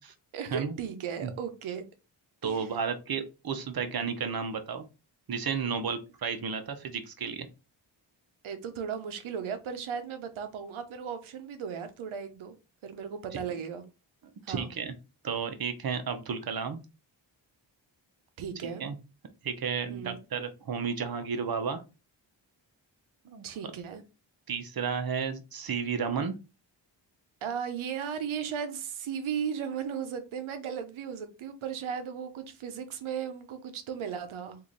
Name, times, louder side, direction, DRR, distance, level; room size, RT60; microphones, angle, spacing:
voice 1, 0.3-1.8 2.4-2.7 8.4-12.5 12.8-13.8 14.4-14.7 18.4-18.8 19.9-20.2 23.4-24.0 27.4-34.6, right 7 dB, 90° right, 0.8 m, -36 dB
voice 2, 2.4-4.8 5.3-7.5 13.3-13.4 14.5-14.9 15.2-16.8 18.8-18.9 19.4-21.8 23.2-23.4 24.5-26.3, right 6 dB, 50° right, 0.9 m, -32 dB
3.0 x 2.6 x 3.8 m
cardioid pair, 60°, 47 cm